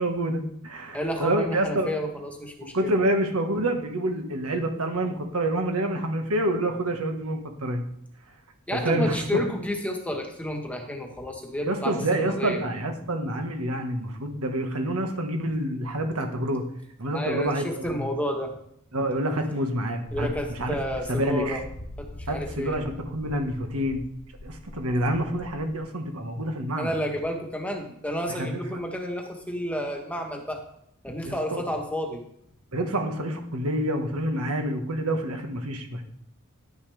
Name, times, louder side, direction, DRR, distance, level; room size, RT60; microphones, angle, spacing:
voice 1, 0.0-1.9 2.6-7.8 8.7-9.2 11.6-16.6 17.0-18.0 18.9-20.3 20.6-20.7 21.1-21.6 22.3-24.0 24.4-26.9 28.3-28.8 31.3-31.6 32.7-36.0, right 1 dB, 90° right, 4 dB, 1.5 m, -27 dB
voice 2, 0.9-2.9 8.7-12.7 17.1-18.6 20.1-21.6 22.0-22.8 26.8-30.6 31.0-32.3, equal, 5° left, 2 dB, 1.3 m, -31 dB
sound 1, 20.1-25.8, left 1 dB, 75° left, 1.0 m, -43 dB
11.0 x 9.6 x 3.4 m, 0.72 s
head